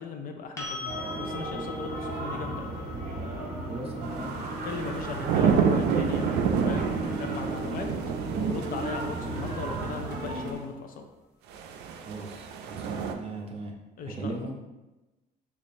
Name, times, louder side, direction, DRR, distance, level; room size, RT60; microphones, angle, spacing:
voice 1, 0.0-2.7 4.6-7.9 8.4-11.0 14.0-14.5, left 5 dB, 55° left, 4 dB, 0.5 m, -37 dB
sound 1, 0.6-8.4 11.2-11.3, left 4 dB, 15° left, 0.8 m, -43 dB
sound 2, 0.9-10.5, right 2 dB, 60° right, 0.9 m, -35 dB
voice 2, 3.7-4.3 12.1-13.7 14.1-14.5, right 3 dB, 35° right, 0 dB, 0.7 m, -38 dB
sound 3, 4.2-10.5 11.5-13.1, right 6 dB, 80° right, 0.4 m, -29 dB
3.0 x 2.4 x 4.2 m, 1.1 s
cardioid pair, 110°, 17 cm